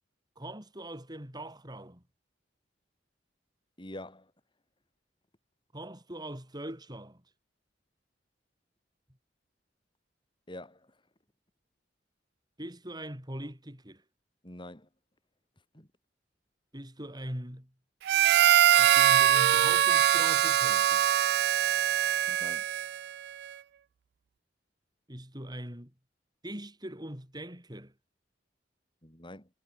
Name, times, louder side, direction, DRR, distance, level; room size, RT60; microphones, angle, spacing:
voice 1, 0.4-2.0 5.7-7.2 12.6-14.0 16.7-17.7 18.8-21.1 25.1-25.9 26.4-27.9, right 1 dB, 25° right, 8.0 m, -41 dB
voice 2, 3.8-4.3 10.5-10.9 14.4-14.9 15.7-15.9 22.3-22.6 29.0-29.5, left 1 dB, 25° left, 5.4 m, -45 dB
Harmonica, 18.1-23.1, right 11 dB, 60° right, 0.3 m, -23 dB
head